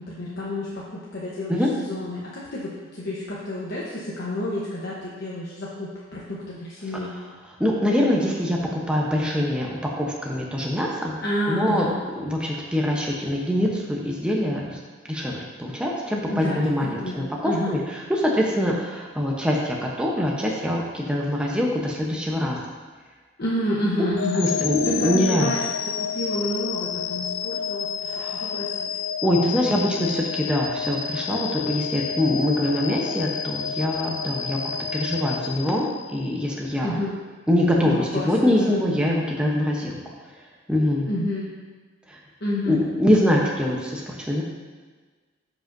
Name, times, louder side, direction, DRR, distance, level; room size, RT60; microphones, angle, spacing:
voice 1, 0.0-7.1 11.2-11.9 16.3-17.8 23.4-24.5 24.8-25.6 25.9-28.9 36.8-37.2 37.8-39.2 41.1-41.5 42.4-42.8, left 1 dB, 55° left, -6 dB, 1.0 m, -29 dB
voice 2, 7.6-11.2 11.5-11.9 12.2-14.8 15.1-22.6 24.3-25.5 28.1-28.6 29.2-37.0 37.5-40.0 40.7-41.1 42.1-42.2 42.7-44.4, left 1 dB, 5° right, -3 dB, 0.8 m, -24 dB
sound 1, 24.2-36.3, left 7 dB, 75° left, 0.4 m, -30 dB
13.0 x 5.2 x 2.6 m, 1.4 s
head